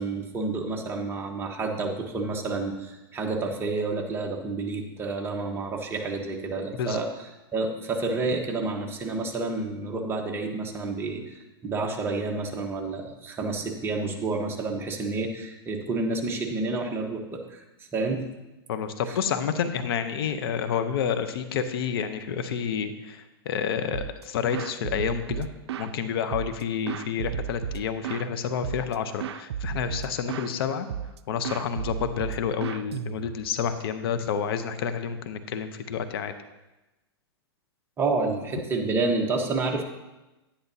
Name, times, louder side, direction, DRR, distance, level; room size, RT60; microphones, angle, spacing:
voice 1, 0.0-7.1 7.5-17.6 17.9-18.2 19.1-19.2 38.0-39.8, right 3 dB, 15° right, 1 dB, 1.1 m, -29 dB
voice 2, 18.7-25.5 25.8-30.9 31.3-36.3, left 7 dB, 65° left, 9 dB, 0.8 m, -29 dB
sound 1, 23.9-24.2 24.5-25.9 26.3-28.3 28.6-28.9 29.2-30.5 30.9-31.2 31.4-33.5, right 9 dB, 90° right, 0.4 m, -34 dB
10.0 x 10.0 x 2.8 m, 1.0 s
hypercardioid pair, 135°, 13 cm